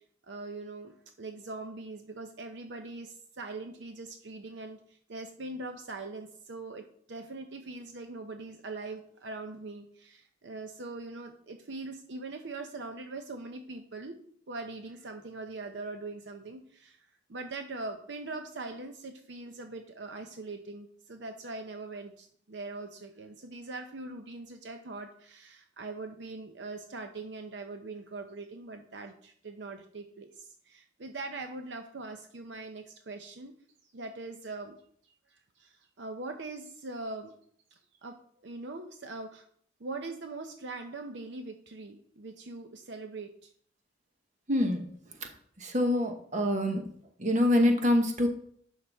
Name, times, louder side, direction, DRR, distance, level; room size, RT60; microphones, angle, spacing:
voice 1, 0.3-6.8 7.1-14.2 14.5-33.5 33.8-34.8 35.0-37.3 37.7-38.1 38.4-39.5 39.8-43.5, right 3 dB, 65° right, 5 dB, 0.7 m, -42 dB
voice 2, 44.5-44.9 45.2-45.3 45.6-46.8 47.2-48.3, left 1 dB, 40° right, 4 dB, 1.1 m, -25 dB
11.0 x 5.7 x 3.5 m, 0.62 s
head